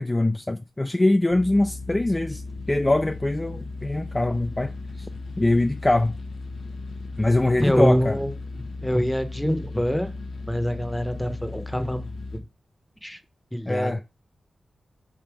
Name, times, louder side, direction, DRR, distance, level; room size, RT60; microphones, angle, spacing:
voice 1, 0.0-2.4 2.7-4.7 5.0-5.1 5.4-6.2 7.2-8.1 13.7-14.0, left 2 dB, 25° left, 0.3 m, -23 dB
sound 1, 1.3-12.4, left 3 dB, 80° left, 0.6 m, -36 dB
voice 2, 7.6-10.1 10.5-12.4 13.0-13.2 13.5-14.0, equal, 5° left, 0.8 m, -25 dB
3.4 x 2.8 x 4.7 m
cardioid pair, 50°, 0 cm